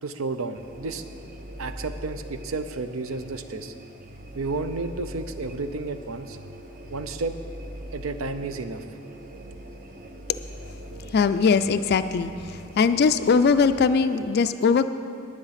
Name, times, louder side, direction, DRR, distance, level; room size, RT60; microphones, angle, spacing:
voice 1, 0.0-1.0 1.6-3.7 4.3-6.4 6.9-7.3 7.9-8.8, right 3 dB, 80° right, 10 dB, 0.6 m, -31 dB
sound 1, 0.5-14.2, right 1 dB, 40° right, 0.8 m, -42 dB
voice 2, 11.1-14.9, left 5 dB, 50° left, 10 dB, 0.3 m, -21 dB
10.5 x 9.6 x 5.8 m, 2.4 s
head